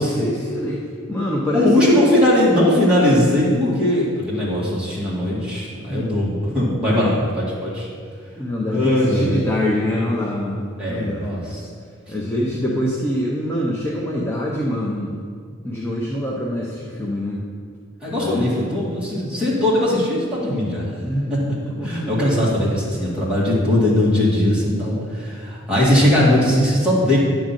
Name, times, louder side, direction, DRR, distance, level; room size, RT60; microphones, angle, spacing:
voice 1, 0.0-2.1 5.9-6.2 6.8-7.2 8.4-11.3 12.1-15.2 15.6-17.4 18.2-18.6 21.0-22.6, left 1 dB, 10° left, -4 dB, 0.7 m, -25 dB
voice 2, 1.5-7.9 8.7-9.4 10.8-11.4 18.0-20.9 21.3-21.4 21.8-27.2, left 1 dB, 5° right, -7 dB, 2.2 m, -19 dB
10.0 x 3.8 x 7.4 m, 2.1 s
head